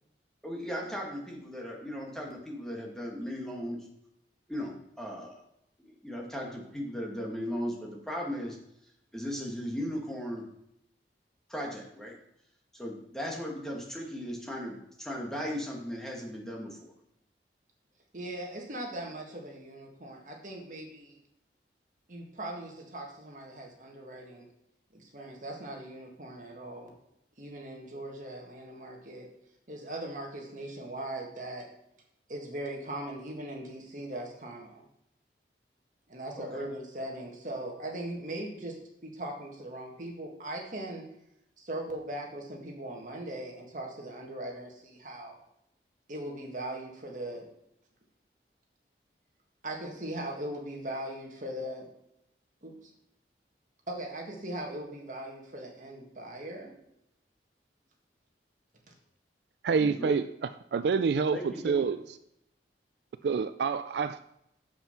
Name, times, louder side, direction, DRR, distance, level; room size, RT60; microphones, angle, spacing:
voice 1, 0.4-3.9 4.5-5.4 5.8-8.6 9.1-10.5 11.5-12.2 12.7-16.9 36.4-36.7 59.7-60.2 61.3-61.9, equal, 5° left, -2 dB, 1.5 m, -37 dB
voice 2, 18.1-21.2 22.1-24.5 24.9-26.9 27.4-29.3 29.7-31.7 32.3-34.8 36.1-41.0 41.6-45.4 46.1-47.5 49.6-51.9 52.6-52.9 53.9-56.7 58.9-59.0, right 1 dB, 45° right, 1 dB, 1.6 m, -39 dB
voice 3, 59.6-60.2 60.7-62.0 63.2-64.2, right 5 dB, 70° right, 12 dB, 0.3 m, -27 dB
7.3 x 5.7 x 5.7 m, 0.79 s
head